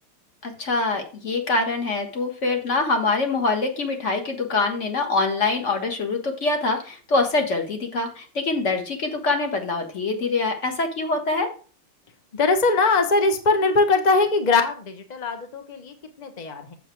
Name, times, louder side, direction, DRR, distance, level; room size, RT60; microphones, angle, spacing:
voice 1, 0.4-11.5, left 3 dB, 35° left, 4 dB, 1.6 m, -24 dB
voice 2, 12.3-16.7, left 3 dB, 65° left, 6 dB, 0.4 m, -21 dB
7.4 x 7.3 x 4.5 m, 0.38 s
omnidirectional pair, 2.4 m